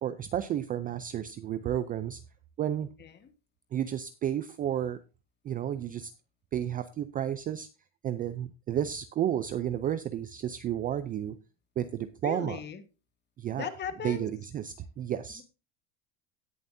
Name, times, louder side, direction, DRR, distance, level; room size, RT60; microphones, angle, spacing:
voice 1, 0.0-2.2 2.6-2.9 3.7-5.0 5.4-6.1 6.5-7.7 8.0-11.4 11.8-12.6 13.4-13.7 14.0-15.4, right 10 dB, 25° right, 12 dB, 0.4 m, -32 dB
voice 2, 3.0-3.3 12.2-12.8 13.6-14.3 15.4-15.5, left 8 dB, 25° left, 9 dB, 1.5 m, -38 dB
17.0 x 7.0 x 2.6 m, 0.30 s
cardioid pair, 155°, 38 cm